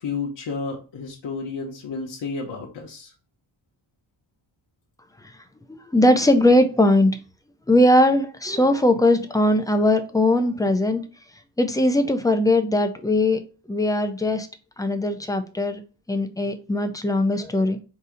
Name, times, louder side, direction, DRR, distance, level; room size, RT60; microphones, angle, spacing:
voice 1, 0.0-3.1, left 4 dB, 60° left, -1 dB, 0.9 m, -31 dB
voice 2, 5.7-7.1 7.7-11.0 11.6-13.4 13.7-14.5 14.8-15.8 16.1-17.8, left 1 dB, 10° left, 7 dB, 0.3 m, -20 dB
4.0 x 2.7 x 4.9 m, 0.34 s
wide cardioid pair, 175°, 48 cm